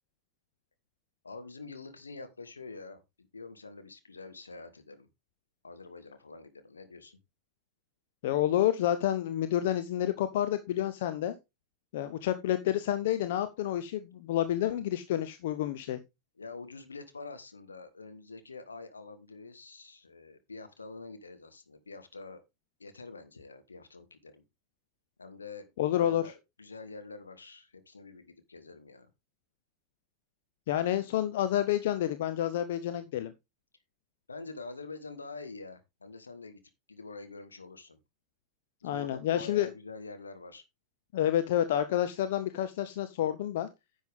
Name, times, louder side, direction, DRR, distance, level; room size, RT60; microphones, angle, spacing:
voice 1, 1.2-5.1 5.6-7.2 16.4-22.4 22.8-24.4 25.2-29.1 34.3-36.6 36.9-38.0 38.8-40.6, left 3 dB, 75° left, 1.7 m, -46 dB
voice 2, 8.2-11.3 11.9-16.0 25.8-26.2 30.7-33.3 38.8-39.7 41.1-43.7, left 11 dB, 55° left, 0.8 m, -29 dB
10.5 x 7.5 x 3.5 m
figure-of-eight pair, 90°, 0 cm